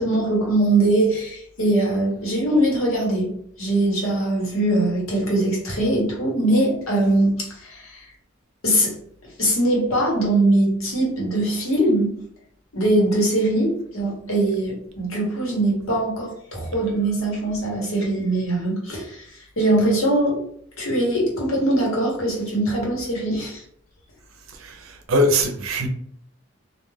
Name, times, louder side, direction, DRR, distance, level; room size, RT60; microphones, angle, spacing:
voice 1, 0.0-3.3 3.6-8.0 8.6-8.9 9.4-12.1 12.7-19.2 19.6-20.4 20.8-23.6, right 1 dB, 85° left, 1.1 m, -21 dB
voice 2, 24.6-25.9, equal, 85° right, 0.5 m, -22 dB
2.3 x 2.3 x 3.2 m
head